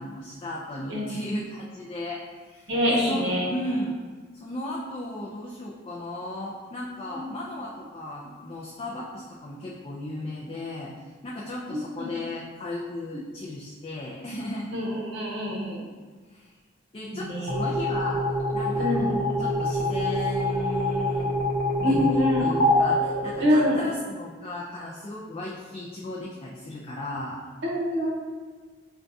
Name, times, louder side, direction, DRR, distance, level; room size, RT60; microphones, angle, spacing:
voice 1, 0.0-4.0 4.4-10.9 11.2-14.8 16.3-16.4 16.9-18.2 18.5-21.3 21.8-27.4, left 1 dB, 30° left, -4 dB, 0.3 m, -35 dB
voice 2, 0.9-1.3 2.7-3.5 7.1-7.2 11.7-12.1 14.7-15.8 17.1-17.5 18.8-19.1 21.8-22.5 23.4-23.8 27.6-28.1, left 1 dB, 65° right, -3 dB, 0.7 m, -25 dB
sound 1, 17.5-24.0, left 1 dB, 45° left, 0.8 m, -25 dB
5.8 x 2.2 x 2.6 m, 1.4 s
head